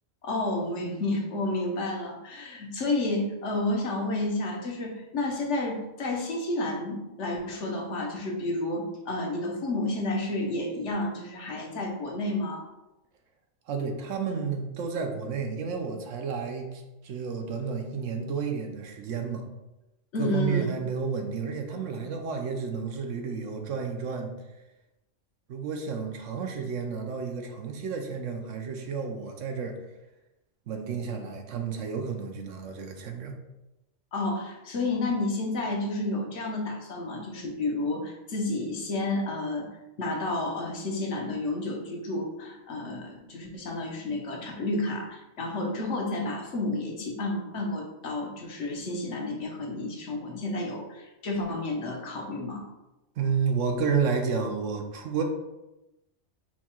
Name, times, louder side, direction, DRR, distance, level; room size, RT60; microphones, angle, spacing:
voice 1, 0.2-12.6 20.1-20.8 34.1-39.7 40.0-52.6, left 2 dB, 65° left, 0 dB, 1.1 m, -31 dB
voice 2, 13.7-19.4 20.2-24.3 25.5-29.8 30.7-33.3 53.2-55.2, right 5 dB, 75° right, 4 dB, 1.0 m, -31 dB
4.5 x 2.3 x 4.2 m, 0.97 s
omnidirectional pair, 1.3 m